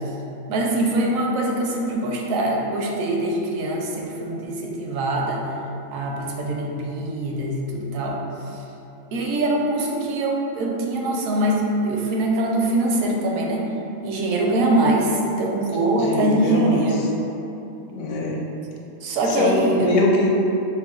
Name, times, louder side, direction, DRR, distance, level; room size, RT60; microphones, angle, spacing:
voice 1, 0.5-5.5 5.9-8.2 9.1-13.7 14.0-17.0 19.0-20.0, right 1 dB, 75° right, -1 dB, 1.0 m, -23 dB
voice 2, 16.0-17.0 17.9-18.4 19.3-20.3, left 2 dB, 80° left, -1 dB, 1.0 m, -22 dB
4.5 x 2.2 x 3.7 m, 2.9 s
omnidirectional pair, 1.4 m